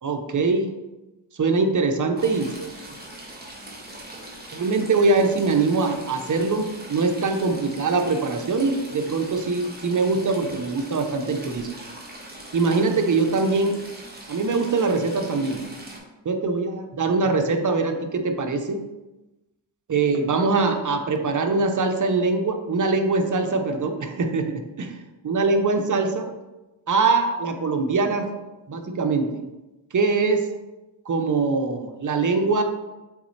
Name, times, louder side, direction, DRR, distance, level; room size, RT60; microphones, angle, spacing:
voice 1, 0.0-0.7 1.4-2.5 4.5-11.7 12.5-13.8 14.3-15.7 16.2-18.8 19.9-24.9 25.2-26.3 26.9-28.3 28.7-29.4 29.9-30.4 31.1-32.6, right 3 dB, 40° right, 6 dB, 0.9 m, -23 dB
Stream / Trickle dribble, 2.2-16.0, right 1 dB, 20° right, 1.8 m, -41 dB
6.9 x 4.1 x 3.4 m, 1.1 s
cardioid pair, 65°, 46 cm